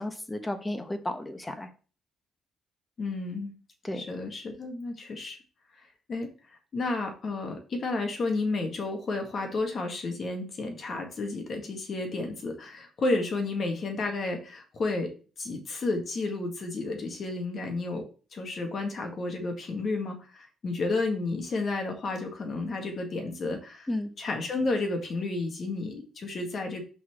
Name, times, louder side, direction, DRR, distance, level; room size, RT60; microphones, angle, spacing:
voice 1, 0.0-1.7 3.8-4.0 23.9-24.1, left 1 dB, 15° left, 7 dB, 1.1 m, -33 dB
voice 2, 3.0-3.6 3.9-5.4 6.1-6.3 6.7-23.9 24.2-26.8, left 3 dB, 50° left, 4 dB, 1.7 m, -31 dB
5.7 x 4.3 x 4.7 m, 0.36 s
cardioid pair, 90°, 0 cm